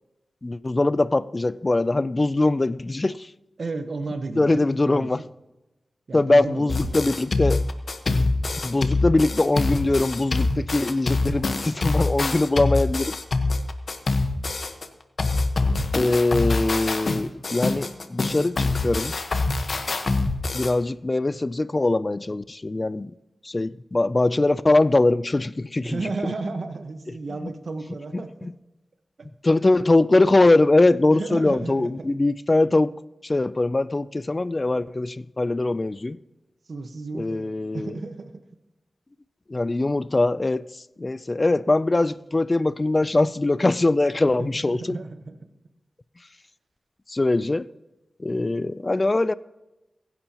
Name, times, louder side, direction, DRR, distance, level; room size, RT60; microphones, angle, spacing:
voice 1, 0.4-3.3 4.4-5.2 6.1-7.6 8.6-13.2 15.9-19.1 20.5-23.1 23.4-26.3 28.1-28.5 29.4-32.9 33.2-36.2 37.1-37.9 39.5-45.0 47.1-47.7 48.2-49.3, left 2 dB, 35° left, 0.4 m, -22 dB
voice 2, 3.6-5.1 6.1-7.2 25.8-28.5 31.1-32.1 36.7-38.3 44.4-45.4, right 3 dB, 70° right, 1.2 m, -33 dB
sound 1, 6.7-14.9 15.2-20.7, left 3 dB, 65° left, 1.2 m, -25 dB
23.0 x 11.0 x 3.0 m
cardioid pair, 55°, 0 cm